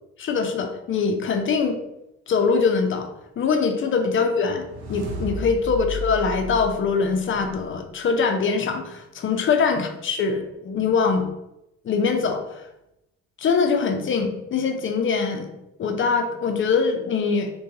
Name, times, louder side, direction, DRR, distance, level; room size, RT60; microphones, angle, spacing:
voice 1, 0.2-1.8 2.3-3.1 3.4-4.6 4.9-11.3 11.8-12.7 13.4-15.5 15.8-17.5, left 5 dB, 35° left, 5 dB, 0.5 m, -23 dB
sound 1, 4.4-7.7, left 1 dB, 85° right, 0.7 m, -34 dB
2.5 x 2.3 x 2.7 m, 0.87 s
hypercardioid pair, 60°, 37 cm